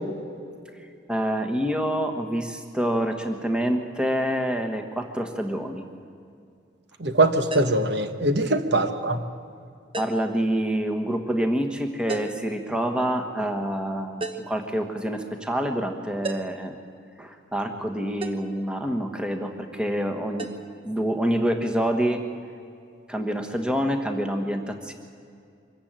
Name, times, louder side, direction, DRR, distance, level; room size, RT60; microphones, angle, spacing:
voice 1, 1.1-5.8 8.4-8.6 10.0-16.7 17.2-20.5 20.8-22.2 23.1-24.9, equal, 5° right, 4 dB, 1.3 m, -27 dB
voice 2, 7.0-9.2, right 2 dB, 60° right, 8 dB, 1.2 m, -22 dB
sound 1, 7.5-7.9 9.9-10.4 12.1-12.5 14.2-14.6 16.2-16.7 18.2-18.5 20.4-20.6, right 3 dB, 25° right, 1.0 m, -34 dB
24.5 x 14.5 x 8.9 m, 2.4 s
head